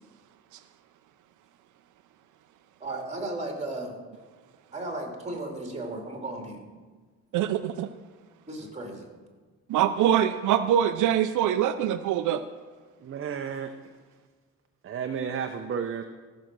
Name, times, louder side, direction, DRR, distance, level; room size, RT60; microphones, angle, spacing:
voice 1, 2.8-3.9 4.7-6.6 8.5-9.1, right 2 dB, 20° right, 1 dB, 2.8 m, -35 dB
voice 2, 7.3-7.9 9.7-12.4, right 10 dB, 80° right, 10 dB, 0.6 m, -24 dB
voice 3, 13.0-13.9 14.8-16.0, right 7 dB, 45° right, 6 dB, 0.8 m, -32 dB
14.5 x 6.4 x 6.2 m, 1.4 s
cardioid pair, 90°, 30 cm